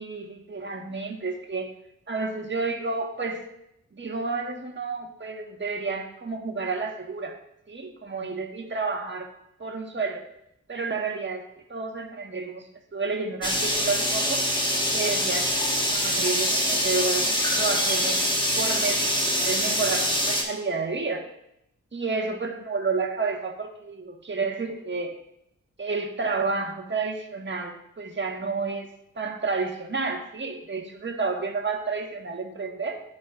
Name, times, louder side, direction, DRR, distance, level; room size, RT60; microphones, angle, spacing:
voice 1, 0.0-1.7 2.1-3.4 3.9-7.4 7.7-9.3 9.6-10.2 10.7-11.4 11.7-14.4 14.9-15.4 15.9-18.2 18.6-21.2 21.9-25.2 25.8-28.9 29.2-33.0, right 4 dB, 35° right, 1 dB, 1.4 m, -30 dB
sound 1, 13.4-20.4, equal, 15° left, 1.5 m, -24 dB
12.0 x 4.0 x 2.5 m, 0.78 s
cardioid pair, 55°, 32 cm